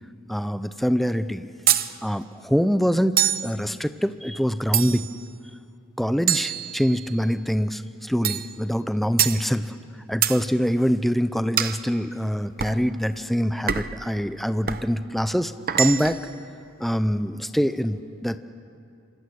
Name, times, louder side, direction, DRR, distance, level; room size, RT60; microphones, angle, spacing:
voice 1, 0.3-1.5 2.0-5.1 6.0-9.7 10.1-15.5 15.8-16.2 16.8-18.4, equal, ahead, 11 dB, 0.7 m, -24 dB
sound 1, 1.7-1.9 3.2-3.5 4.7-5.2 6.3-7.2 8.2-8.5 9.2-9.4 10.2-10.4 11.6-11.8 12.6-12.8 13.7-14.0 14.7-14.9 15.7-16.3, right 10 dB, 45° right, 0.8 m, -24 dB
27.0 x 26.0 x 6.5 m, 2.4 s
head